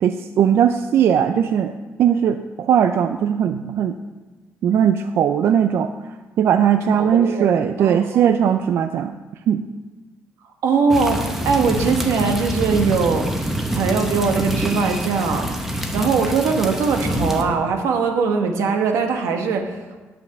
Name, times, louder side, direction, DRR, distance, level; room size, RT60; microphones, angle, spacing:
voice 1, 0.0-1.7 2.0-4.0 4.6-5.9 6.4-9.1 9.5-9.6, right 8 dB, 55° right, 9 dB, 0.4 m, -18 dB
voice 2, 6.9-7.5 7.8-8.3 10.6-13.3 13.7-15.5 15.9-20.0, right 5 dB, 85° right, 4 dB, 1.3 m, -21 dB
sound 1, 10.9-17.4, equal, 5° right, 0.8 m, -25 dB
9.3 x 5.9 x 6.7 m, 1.2 s
cardioid pair, 165°, 5 cm